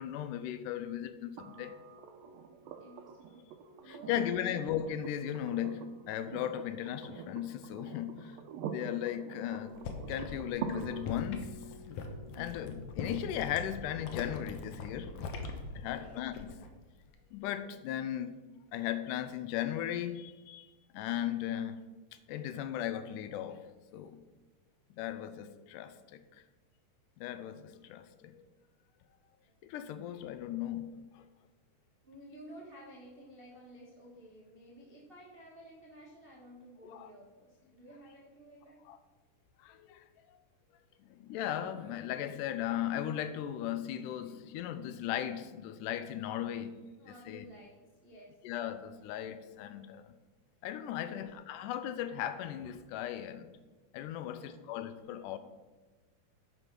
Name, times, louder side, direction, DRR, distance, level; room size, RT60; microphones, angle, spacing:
voice 1, 0.0-1.8 3.9-9.8 10.1-11.6 12.4-15.1 15.7-16.5 17.3-18.4 18.7-21.9 22.3-23.6 23.9-24.2 25.0-26.2 27.2-28.4 29.6-31.2 36.9-37.1 38.9-39.0 39.6-40.0 41.1-46.8 47.1-47.5 48.4-50.1 50.6-53.5 53.9-55.4, left 11 dB, 85° left, 11 dB, 2.2 m, -37 dB
sound 1, 1.4-15.3 17.1-17.2, right 6 dB, 75° right, 1.6 m, -46 dB
voice 2, 2.6-3.5 3.8-4.6 15.8-16.2 25.7-26.0 29.4-29.6 32.0-38.8 44.2-44.3 46.9-48.4 51.0-51.3 54.2-54.7, equal, 55° right, -4 dB, 0.6 m, -53 dB
sound 2, 9.6-16.7 17.0-17.4, left 3 dB, 70° left, 2.0 m, -42 dB
9.8 x 5.2 x 6.0 m, 1.2 s
omnidirectional pair, 3.7 m